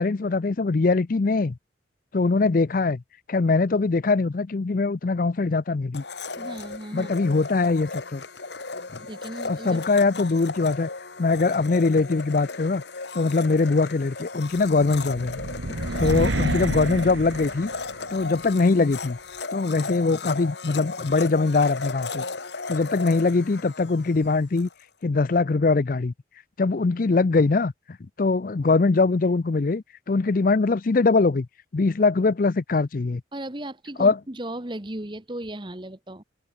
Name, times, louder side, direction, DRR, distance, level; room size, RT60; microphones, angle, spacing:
voice 1, 0.0-1.6 2.1-3.0 3.3-6.0 6.9-8.2 9.5-10.9 11.2-12.8 13.1-15.4 15.7-17.7 18.1-19.2 19.5-22.2 22.7-24.7 25.0-26.1 26.6-27.7 28.2-31.5 31.7-33.2 34.0-34.2, left 3 dB, 45° left, 0.5 m, -22 dB
Domestic sounds home sounds, 5.9-24.7, left 4 dB, 65° left, 1.8 m, -36 dB
voice 2, 6.4-7.1 9.0-9.8 15.9-16.6 33.3-36.2, right 1 dB, 25° right, 1.3 m, -36 dB
sound 1, 15.1-18.2, right 2 dB, 85° right, 1.6 m, -29 dB
head